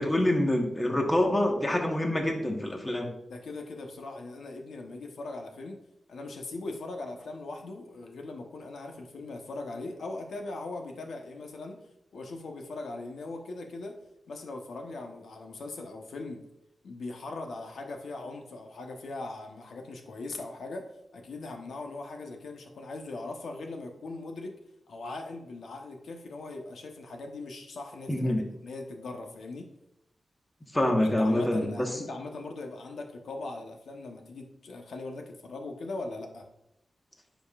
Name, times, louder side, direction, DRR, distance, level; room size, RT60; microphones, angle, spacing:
voice 1, 0.0-3.1 28.1-28.4 30.7-31.9, left 1 dB, 15° left, 2 dB, 1.3 m, -26 dB
voice 2, 3.3-5.8 6.1-11.8 12.1-14.0 14.3-16.4 16.8-24.5 24.9-28.3 28.6-29.7 31.0-36.4, left 2 dB, 85° left, 3 dB, 1.1 m, -40 dB
10.0 x 5.3 x 2.5 m, 0.84 s
wide cardioid pair, 95°, 0 cm